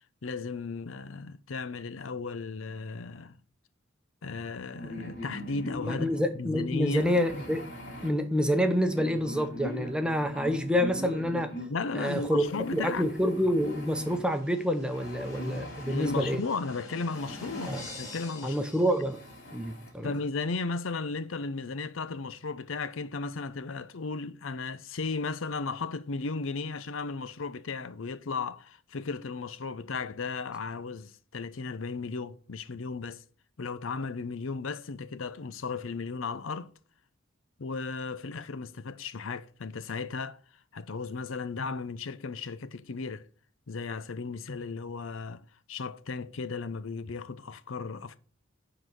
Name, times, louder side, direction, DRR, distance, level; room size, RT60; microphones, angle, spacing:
voice 1, 0.2-3.4 4.2-7.0 11.7-13.1 15.9-18.6 20.0-33.2 33.6-36.7 37.6-40.4 40.7-43.3 43.7-48.2, left 4 dB, 85° left, 0.6 m, -35 dB
sound 1, 4.7-6.2 7.0-8.1 8.8-11.7 12.4-14.2 14.9-16.4 17.1-18.2 18.7-18.8 19.1-19.9, equal, 60° left, 2.9 m, -41 dB
voice 2, 5.9-7.7 8.0-11.5 11.9-16.4 17.7-17.8 18.4-19.2 19.5-20.1, equal, 5° right, 0.8 m, -28 dB
sound 2, 12.0-19.6, left 1 dB, 15° left, 3.6 m, -47 dB
10.0 x 4.0 x 6.1 m
head